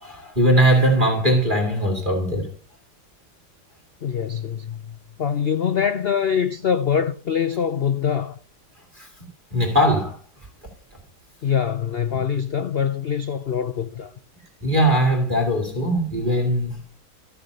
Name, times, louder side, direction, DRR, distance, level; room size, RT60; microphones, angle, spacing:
voice 1, 0.0-2.5 9.0-9.1 9.5-10.2 14.6-16.8, right 1 dB, 25° right, 2.6 m, -20 dB
voice 2, 4.0-8.4 11.4-14.1, left 7 dB, 90° left, 0.5 m, -24 dB
14.0 x 6.7 x 6.7 m
omnidirectional pair, 1.9 m